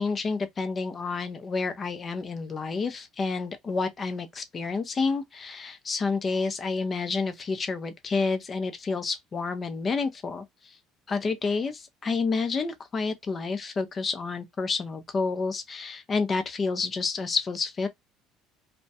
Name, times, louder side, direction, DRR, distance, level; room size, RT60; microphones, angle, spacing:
voice 1, 0.0-10.8 11.1-17.9, left 4 dB, 30° left, 0.5 m, -29 dB
2.2 x 2.1 x 2.6 m
supercardioid pair, 105°, 0 cm